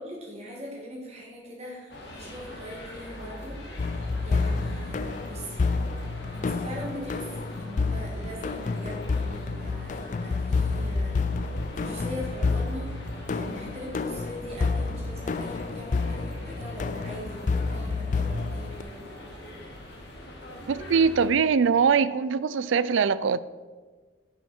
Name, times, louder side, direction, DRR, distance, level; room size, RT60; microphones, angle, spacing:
voice 1, 0.0-5.6 6.3-11.2 11.8-13.0 13.3-18.9, equal, 35° right, -3 dB, 2.2 m, -41 dB
sound 1, 1.9-21.3, left 1 dB, 60° left, 2.2 m, -43 dB
sound 2, 3.8-18.8, left 4 dB, 40° left, 0.3 m, -29 dB
voice 2, 20.7-23.4, right 6 dB, 80° right, 17 dB, 0.4 m, -22 dB
10.5 x 7.2 x 4.4 m, 1.4 s
head